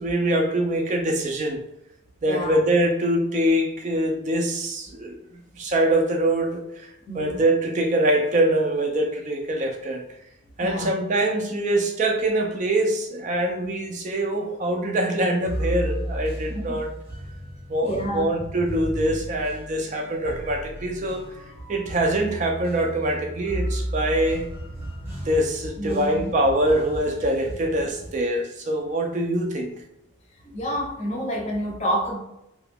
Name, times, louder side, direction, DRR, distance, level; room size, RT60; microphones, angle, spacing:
voice 1, 0.0-1.6 2.2-5.2 5.6-10.0 10.6-16.9 17.7-21.2 21.7-24.5 25.3-29.8, right 1 dB, 35° right, 2 dB, 0.4 m, -24 dB
voice 2, 2.3-2.6 7.1-7.4 10.6-10.9 13.6-13.7 16.5-16.8 17.8-18.3 25.8-26.3 30.4-32.2, equal, 30° left, 0 dB, 0.6 m, -29 dB
sound 1, 15.5-28.2, right 1 dB, 10° right, 0.8 m, -34 dB
2.8 x 2.3 x 3.3 m, 0.85 s
head